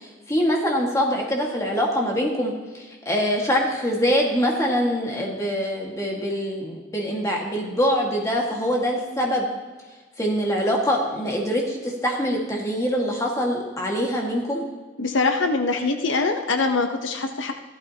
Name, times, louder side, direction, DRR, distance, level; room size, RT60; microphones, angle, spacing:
voice 1, 0.0-9.5 10.2-14.6, equal, 15° left, -1 dB, 1.8 m, -24 dB
voice 2, 15.0-17.5, left 3 dB, 85° left, 6 dB, 0.9 m, -23 dB
14.5 x 12.0 x 2.9 m, 1.3 s
head